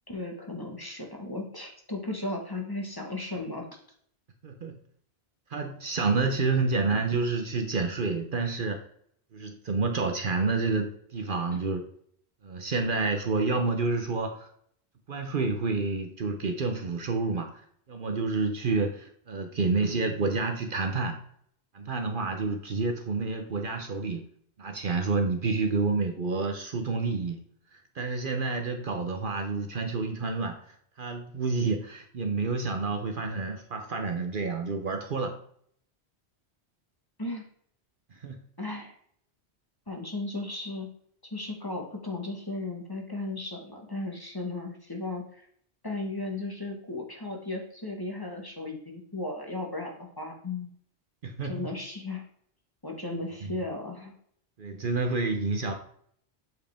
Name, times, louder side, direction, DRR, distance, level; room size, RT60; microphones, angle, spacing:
voice 1, 0.1-3.8 11.5-11.6 37.2-37.4 38.6-38.9 39.9-40.9 41.2-45.5 45.8-50.7 51.4-52.2 52.8-54.1, left 2 dB, 20° left, 0 dB, 1.3 m, -35 dB
voice 2, 5.5-8.8 9.3-11.8 12.4-14.5 15.1-17.6 17.9-21.2 21.7-24.2 24.6-27.4 27.9-30.6 31.0-35.4 38.1-38.4 51.2-51.7 53.4-53.5 54.6-55.7, right 3 dB, 55° right, 5 dB, 0.9 m, -29 dB
7.9 x 4.7 x 3.4 m, 0.64 s
omnidirectional pair, 1.1 m